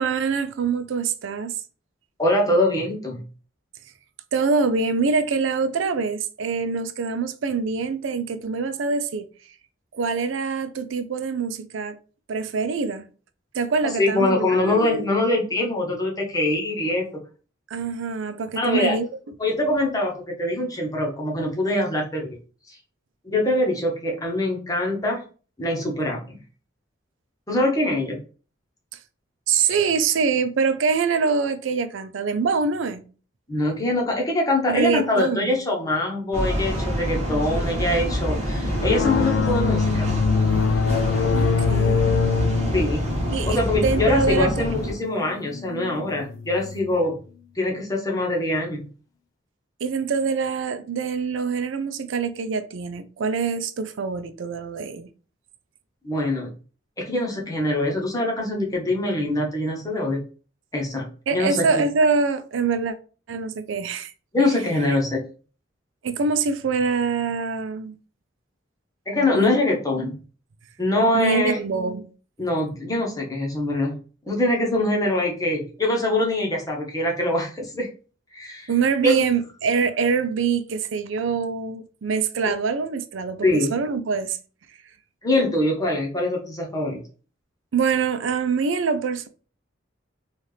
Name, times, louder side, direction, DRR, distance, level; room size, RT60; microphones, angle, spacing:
voice 1, 0.0-1.5 4.3-9.3 9.9-12.0 12.3-13.0 13.5-15.1 17.7-19.1 29.5-33.0 34.7-35.6 41.3-42.2 43.3-44.5 49.8-55.1 61.3-62.9 63.3-64.1 66.0-67.9 69.2-69.5 70.0-70.1 71.1-72.0 78.7-84.4 87.7-89.3, right 5 dB, 80° right, 0.4 m, -24 dB
voice 2, 2.2-3.2 13.8-17.1 18.6-19.0 19.4-22.4 22.7-22.8 23.2-25.2 25.6-26.4 27.5-28.2 33.5-40.1 42.7-43.0 43.5-47.2 47.5-48.9 56.0-56.5 57.0-60.2 60.7-61.7 64.3-65.2 69.1-70.2 70.8-71.6 72.4-74.0 74.2-77.9 78.3-78.7 79.0-79.2 83.4-83.7 85.2-87.0, left 1 dB, 20° left, 1.0 m, -23 dB
sound 1, 36.3-44.9, equal, 35° right, 1.2 m, -26 dB
sound 2, 38.7-46.9, left 5 dB, 70° left, 0.3 m, -24 dB
4.1 x 2.4 x 3.2 m
head